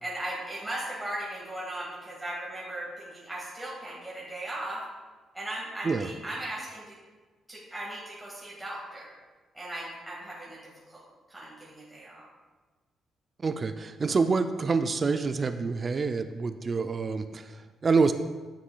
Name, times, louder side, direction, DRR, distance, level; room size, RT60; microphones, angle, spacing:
voice 1, 0.0-4.9 5.3-6.9 7.5-9.2 9.5-10.6 10.9-11.0 11.3-12.3, right 1 dB, 10° right, -6 dB, 1.7 m, -37 dB
voice 2, 13.4-18.1, right 4 dB, 35° right, 9 dB, 0.3 m, -27 dB
9.7 x 6.1 x 2.3 m, 1.4 s
cardioid pair, 90°, 0 cm